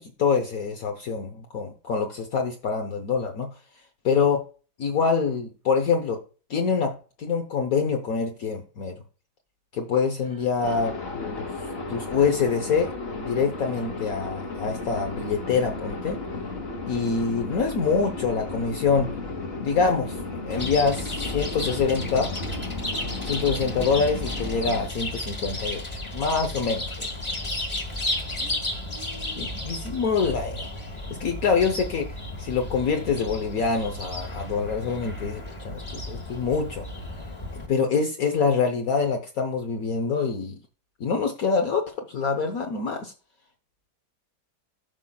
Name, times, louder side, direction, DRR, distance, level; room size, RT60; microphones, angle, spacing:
voice 1, 0.0-3.5 4.0-4.4 4.8-6.2 6.5-8.9 9.7-11.5 11.9-12.9 13.1-16.2 16.8-19.1 19.6-22.3 23.2-27.1 29.3-30.7 31.2-36.8 37.6-40.6 41.0-43.1, left 5 dB, 60° left, 1.3 m, -25 dB
voice 2, 10.2-10.9 27.9-28.6 28.9-29.5, right 4 dB, 25° right, 0.8 m, -48 dB
sound 1, 10.6-24.9, left 3 dB, 40° left, 1.5 m, -34 dB
Chirp tweet, 20.5-37.7, left 1 dB, 20° left, 1.1 m, -33 dB
12.5 x 5.6 x 2.3 m
omnidirectional pair, 1.8 m